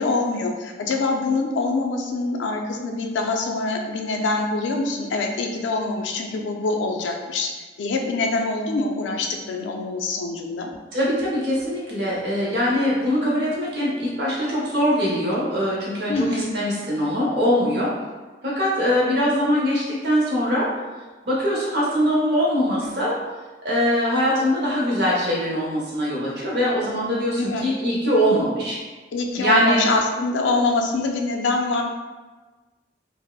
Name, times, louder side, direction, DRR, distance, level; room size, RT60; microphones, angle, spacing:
voice 1, 0.0-7.5 7.8-10.7 16.1-16.5 27.4-27.7 29.1-31.8, left 3 dB, 85° left, 2 dB, 0.4 m, -24 dB
voice 2, 10.9-16.3 16.5-17.9 18.4-20.7 21.2-23.2 23.6-28.8 29.4-29.8, equal, 60° right, -6 dB, 0.8 m, -22 dB
3.3 x 2.0 x 2.3 m, 1.3 s
head